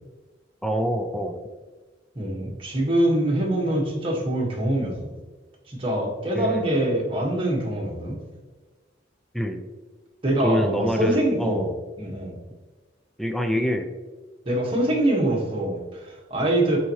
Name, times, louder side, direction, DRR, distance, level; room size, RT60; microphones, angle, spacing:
voice 1, 0.6-1.4 6.3-6.7 9.3-9.6 10.4-11.7 13.2-13.9, equal, ahead, 5 dB, 0.5 m, -25 dB
voice 2, 2.1-5.1 5.7-8.2 10.2-11.7 12.0-12.4 14.4-16.8, right 1 dB, 30° right, -3 dB, 1.7 m, -24 dB
10.5 x 4.2 x 3.1 m, 1.3 s
head